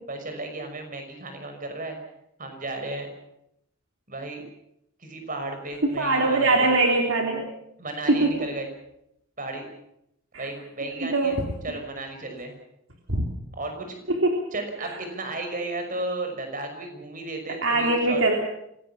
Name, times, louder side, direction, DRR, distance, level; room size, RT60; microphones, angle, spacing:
voice 1, 0.1-2.0 2.4-3.1 4.1-4.4 5.0-6.7 7.8-8.7 9.4-9.7 10.4-11.4 11.6-12.5 13.5-14.0 14.5-18.2, right 2 dB, 40° right, 5 dB, 6.0 m, -34 dB
voice 2, 5.8-7.5 8.1-8.3 10.3-10.5 10.9-11.4 13.1-13.2 14.2-14.4 17.6-18.3, right 2 dB, 65° right, 2 dB, 3.4 m, -22 dB
26.0 x 18.5 x 7.3 m, 0.78 s
head